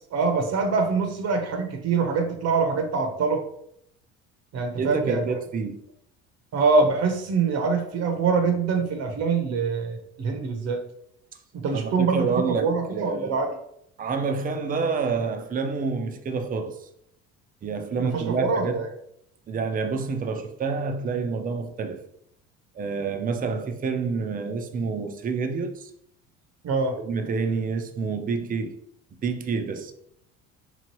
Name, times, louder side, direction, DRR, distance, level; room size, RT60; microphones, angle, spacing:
voice 1, 0.1-3.4 4.5-5.2 6.5-10.8 11.5-13.6 18.0-18.9 26.6-27.0, right 4 dB, 55° right, 0.9 m, -24 dB
voice 2, 4.8-5.8 11.8-13.4 14.0-16.9 17.6-18.9 19.5-22.0 22.7-25.9 27.0-28.8 29.2-29.9, right 4 dB, 30° right, 0.5 m, -28 dB
3.5 x 3.1 x 3.0 m
supercardioid pair, 85°, 30 cm